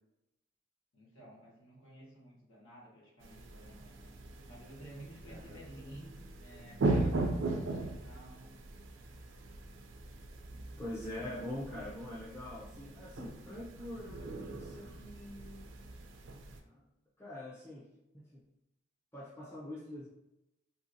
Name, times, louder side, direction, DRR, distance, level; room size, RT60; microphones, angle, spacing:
voice 1, 0.9-4.2 4.4-8.5, right 1 dB, 75° left, -6 dB, 1.3 m, -53 dB
sound 1, 3.2-16.6, right 2 dB, 70° right, 0.4 m, -39 dB
voice 2, 5.3-6.1 10.8-15.7 16.6-16.8 17.2-17.9 18.1-18.4 19.1-20.1, left 1 dB, 10° left, -7 dB, 0.5 m, -44 dB
2.8 x 2.7 x 2.7 m, 0.91 s
head